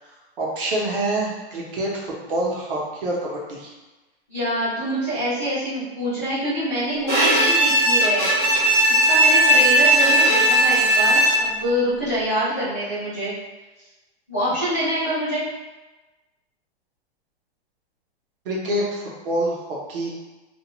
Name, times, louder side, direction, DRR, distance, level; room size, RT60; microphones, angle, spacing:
voice 1, 0.0-3.7 18.4-20.2, right 1 dB, 55° right, -3 dB, 0.8 m, -27 dB
voice 2, 4.3-8.3 8.9-13.3 14.3-15.4, equal, 15° left, -17 dB, 0.3 m, -25 dB
Bowed string instrument, 7.1-11.7, right 1 dB, 20° right, 0.7 m, -17 dB
2.4 x 2.2 x 2.9 m, 1.1 s
hypercardioid pair, 175°, 32 cm